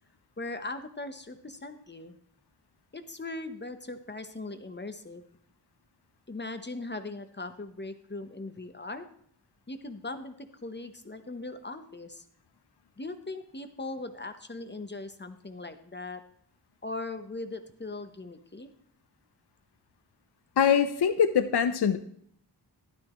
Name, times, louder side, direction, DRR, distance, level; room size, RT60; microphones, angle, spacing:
voice 1, 0.4-2.2 2.9-5.2 6.3-9.1 9.7-12.2 13.0-16.2 16.8-18.7, left 2 dB, 25° left, 8 dB, 1.0 m, -39 dB
voice 2, 20.6-22.0, left 7 dB, 65° left, 10 dB, 0.7 m, -23 dB
12.5 x 12.0 x 3.1 m, 0.65 s
wide cardioid pair, 110°, 43 cm